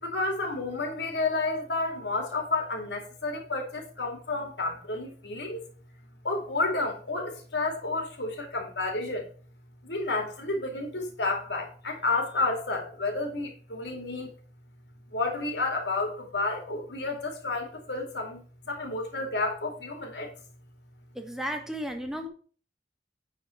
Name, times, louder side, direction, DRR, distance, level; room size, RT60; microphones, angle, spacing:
voice 1, 0.0-5.6 6.2-9.3 9.8-14.3 15.1-20.3, left 3 dB, 75° left, 2.6 m, -31 dB
voice 2, 21.1-22.3, equal, 5° right, 1.3 m, -34 dB
9.6 x 4.3 x 5.8 m
head